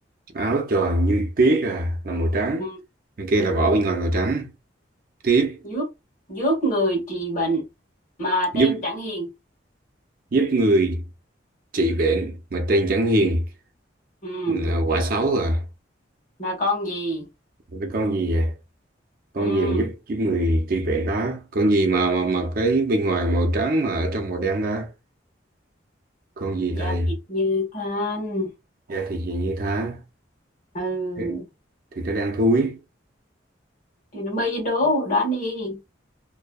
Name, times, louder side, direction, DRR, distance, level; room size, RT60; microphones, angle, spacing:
voice 1, 0.3-2.7 3.2-4.5 5.2-5.6 8.5-8.7 10.3-11.0 11.7-13.4 14.5-15.6 17.7-18.5 19.3-24.9 26.4-27.1 28.9-30.0 31.2-31.3 32.0-32.8, right 2 dB, 50° right, 0.5 m, -22 dB
voice 2, 6.3-7.7 8.2-9.3 14.2-14.7 16.4-17.3 19.4-19.9 26.7-28.5 30.7-31.5 34.1-35.8, left 1 dB, 40° left, 1.3 m, -25 dB
2.7 x 2.1 x 2.2 m
head